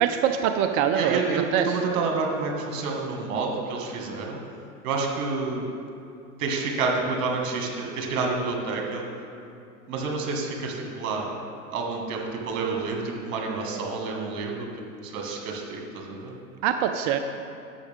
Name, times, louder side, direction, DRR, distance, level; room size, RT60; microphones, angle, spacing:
voice 1, 0.0-1.6 16.6-17.2, right 9 dB, 35° right, 7 dB, 0.4 m, -23 dB
voice 2, 0.9-4.4 4.8-5.7 6.4-9.0 9.9-11.3 11.7-14.7 15.0-16.3, right 4 dB, 65° right, 0 dB, 2.0 m, -29 dB
11.5 x 7.2 x 3.6 m, 2.5 s
hypercardioid pair, 100°, 44 cm